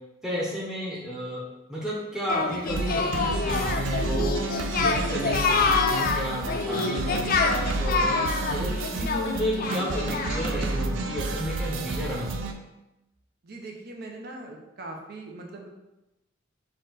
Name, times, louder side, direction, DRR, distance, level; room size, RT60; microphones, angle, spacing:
voice 1, 0.2-1.4 1.7-4.3 4.8-8.2 8.5-12.5, equal, 5° right, -6 dB, 0.8 m, -32 dB
Singing, 2.3-10.6, left 4 dB, 50° left, 0.4 m, -27 dB
sound 1, 2.7-12.5, right 2 dB, 90° right, 0.4 m, -30 dB
voice 2, 13.4-15.7, right 2 dB, 55° right, 1 dB, 0.7 m, -40 dB
4.3 x 2.5 x 3.9 m, 0.94 s
head